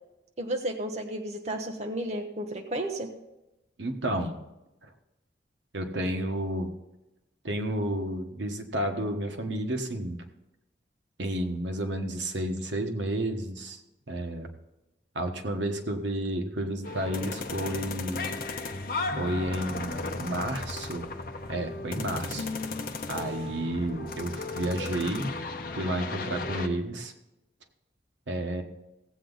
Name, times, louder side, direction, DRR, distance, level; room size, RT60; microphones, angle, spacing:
voice 1, 0.4-3.1, right 1 dB, 40° right, 3 dB, 0.9 m, -32 dB
voice 2, 3.8-4.4 5.7-6.7 7.4-10.2 11.2-13.8 14.1-14.5 15.1-18.4 19.2-21.0 21.5-22.5 23.1-25.3 25.7-27.1 28.3-28.6, right 1 dB, 85° right, 5 dB, 1.3 m, -31 dB
sound 1, 16.8-26.7, left 3 dB, 50° left, 0.8 m, -35 dB
16.0 x 8.1 x 3.9 m, 0.95 s
head